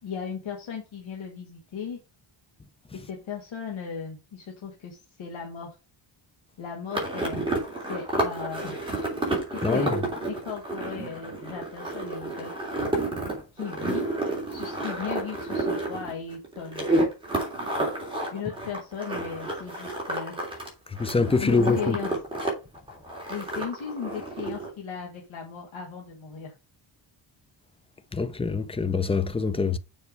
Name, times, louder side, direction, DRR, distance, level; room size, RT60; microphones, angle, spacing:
voice 1, 0.0-2.0 2.9-5.7 6.6-7.5 7.8-8.8 9.5-10.0 10.3-12.5 13.5-14.1 14.5-16.9 18.3-20.4 21.4-22.1 23.3-26.5, left 6 dB, 65° left, 2.2 m, -36 dB
sound 1, 6.9-20.7 21.0-22.5 22.7-24.7, right 2 dB, 10° right, 3.1 m, -30 dB
voice 2, 9.6-10.0 21.0-22.0 28.1-29.8, left 4 dB, 15° left, 0.4 m, -24 dB
7.0 x 5.2 x 5.2 m
wide cardioid pair, 175°, 49 cm